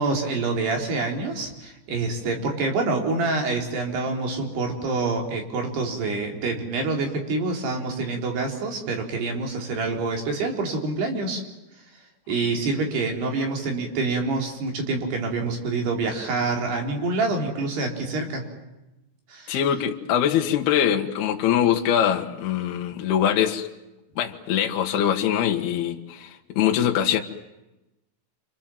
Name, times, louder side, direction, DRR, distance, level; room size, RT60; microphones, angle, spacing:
voice 1, 0.0-11.4 12.3-18.4 19.3-19.6, right 3 dB, 55° right, 2 dB, 5.5 m, -26 dB
voice 2, 19.5-23.7 24.2-27.2, left 9 dB, 65° left, 2 dB, 3.0 m, -23 dB
28.5 x 26.5 x 7.5 m, 0.97 s
omnidirectional pair, 5.7 m